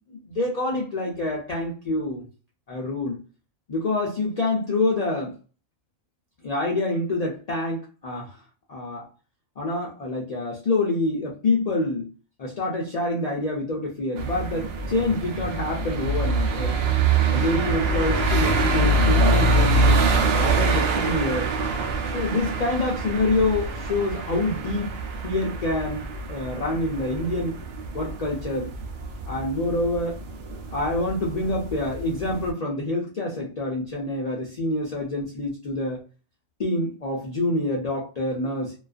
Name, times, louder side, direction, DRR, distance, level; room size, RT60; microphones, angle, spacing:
voice 1, 0.0-2.2 2.7-3.2 3.7-5.3 6.4-8.4 8.7-9.1 9.6-12.1 12.4-16.8 17.3-20.0 20.4-21.5 22.0-24.9 25.2-27.6 27.9-28.7 29.3-30.2 30.7-36.0 36.6-38.7, left 2 dB, 65° left, -2 dB, 0.3 m, -26 dB
sound 1, 14.2-32.5, right 2 dB, 65° right, 0.6 m, -25 dB
2.4 x 2.3 x 2.4 m, 0.35 s
omnidirectional pair, 1.4 m